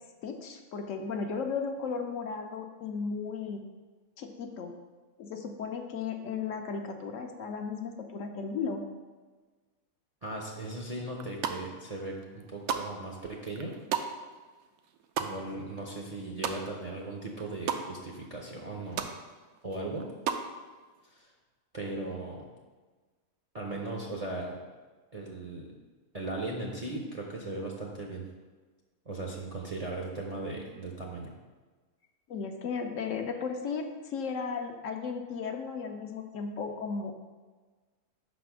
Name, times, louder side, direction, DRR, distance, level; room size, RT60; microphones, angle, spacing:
voice 1, 0.2-3.6 4.2-4.7 5.2-8.9 32.3-37.1, left 5 dB, 70° left, 4 dB, 0.9 m, -35 dB
voice 2, 10.2-13.7 15.2-19.1 19.6-20.1 21.0-21.3 21.7-22.5 23.5-24.6 25.1-25.7 26.1-28.2 29.1-31.3, right 2 dB, 40° right, -2 dB, 0.5 m, -38 dB
sound 1, 11.1-11.9 12.2-17.0 17.2-17.8 18.3-18.4 18.6-19.1 19.5-20.5, right 8 dB, 75° right, 1.0 m, -35 dB
5.4 x 4.2 x 5.9 m, 1.4 s
omnidirectional pair, 1.5 m